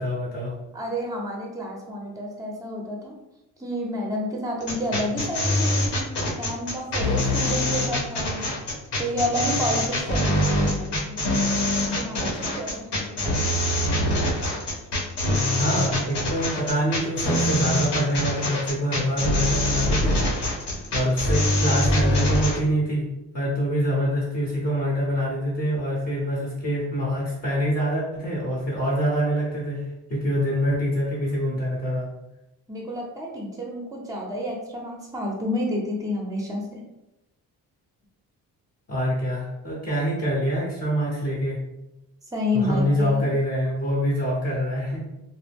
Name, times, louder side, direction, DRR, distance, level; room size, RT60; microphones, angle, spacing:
voice 1, 0.0-0.5 15.6-20.5 20.9-32.1 38.9-41.7 42.5-45.0, equal, 35° left, -5 dB, 1.0 m, -25 dB
voice 2, 0.7-3.1 3.6-6.1 6.4-8.4 9.0-13.7 32.7-36.8 42.3-43.3, left 1 dB, 10° right, -1 dB, 0.8 m, -30 dB
sound 1, 4.6-22.6, left 1 dB, 75° left, 1.0 m, -24 dB
2.1 x 2.0 x 3.4 m, 0.93 s
supercardioid pair, 55°, 41 cm